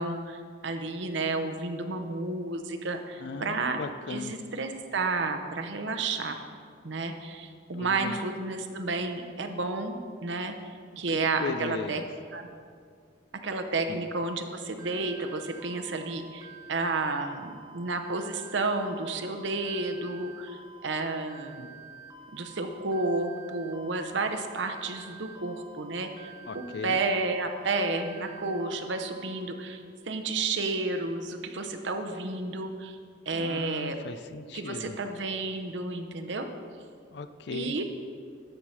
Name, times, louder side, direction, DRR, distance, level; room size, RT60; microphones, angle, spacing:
voice 1, 0.0-3.8 4.1-6.4 6.8-10.5 11.0-12.0 12.3-12.4 13.4-21.7 22.3-33.0 33.3-34.0 34.5-36.5 37.5-37.8, right 3 dB, 65° right, 6 dB, 0.8 m, -31 dB
voice 2, 3.2-4.3 7.8-8.2 10.9-11.0 11.4-12.0 13.9-14.0 26.4-27.0 33.3-34.9 37.1-37.8, left 4 dB, 60° left, 12 dB, 0.4 m, -37 dB
sound 1, 14.8-29.4, right 5 dB, 20° right, 0.8 m, -49 dB
13.0 x 4.7 x 5.7 m, 2.1 s
head